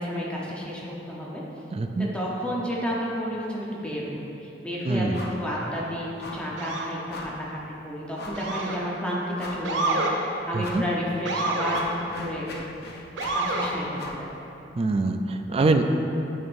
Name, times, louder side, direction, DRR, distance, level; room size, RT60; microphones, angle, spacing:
voice 1, 0.0-1.4 2.1-12.5 13.3-14.4, equal, 5° left, -5 dB, 0.9 m, -31 dB
voice 2, 1.7-2.1 4.9-5.2 10.5-10.8 14.8-15.8, right 3 dB, 30° right, 6 dB, 0.3 m, -24 dB
sound 1, 5.1-5.5 5.7-5.9 6.2-6.5 7.1-7.5 8.1-8.5 9.0-9.1 9.3-9.9 10.6-10.9 11.3-14.3, left 2 dB, 60° left, 0.6 m, -40 dB
Motor vehicle (road) / Siren, 6.6-6.9 8.3-8.9 9.6-10.1 11.2-11.8 13.2-13.7, right 2 dB, 80° right, 0.7 m, -27 dB
9.5 x 5.4 x 2.6 m, 2.9 s
head